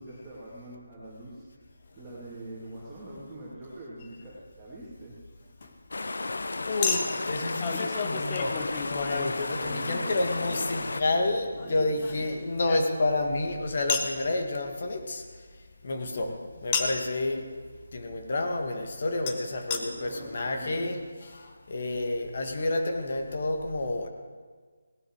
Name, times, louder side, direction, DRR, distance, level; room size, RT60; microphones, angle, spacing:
voice 1, 0.0-1.4 1.9-5.2 9.3-10.9 11.6-12.4 15.9-16.3 19.7-20.9, right 1 dB, 10° right, -10 dB, 2.8 m, -43 dB
Chink clink, 4.0-4.2 6.8-10.0 11.6-13.3 13.9-14.2 16.7-17.1 19.3-19.4 19.7-19.8 20.5-20.6 20.7-20.8, left 5 dB, 25° left, 1.1 m, -32 dB
sound 1, 5.9-11.0, left 3 dB, 70° left, 0.7 m, -33 dB
voice 2, 6.7-15.2 15.8-16.3 16.6-17.4 17.9-21.0 21.7-24.1, left 2 dB, 50° left, 4 dB, 2.0 m, -29 dB
18.0 x 12.0 x 4.8 m, 1.5 s
figure-of-eight pair, 165°, 0 cm